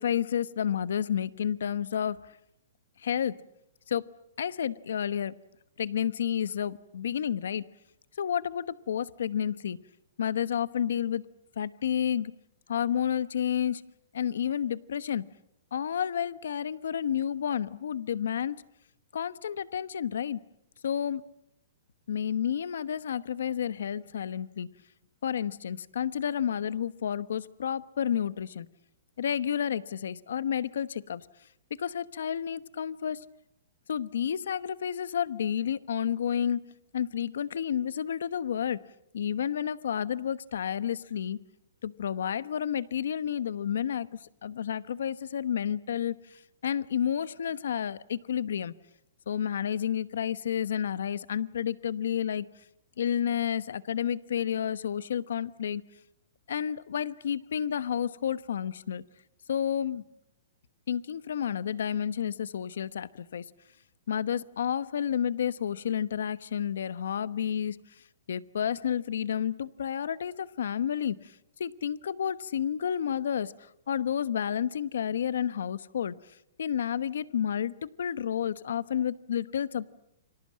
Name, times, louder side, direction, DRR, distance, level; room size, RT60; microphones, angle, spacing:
voice 1, 0.0-2.2 3.0-3.4 3.9-4.1 4.4-5.3 5.8-7.7 8.2-9.8 10.2-11.3 11.6-12.3 12.7-15.3 15.7-18.6 19.1-20.4 20.8-21.2 22.1-24.7 25.2-28.7 29.2-31.3 31.8-33.2 33.9-38.8 39.1-41.4 41.8-48.7 49.3-52.5 53.0-55.8 56.5-59.0 59.5-60.0 60.9-63.4 64.1-67.8 68.3-76.1 76.6-79.9, left 9 dB, 80° left, 16 dB, 1.1 m, -30 dB
29.5 x 25.0 x 7.5 m, 0.78 s
hypercardioid pair, 160°, 0 cm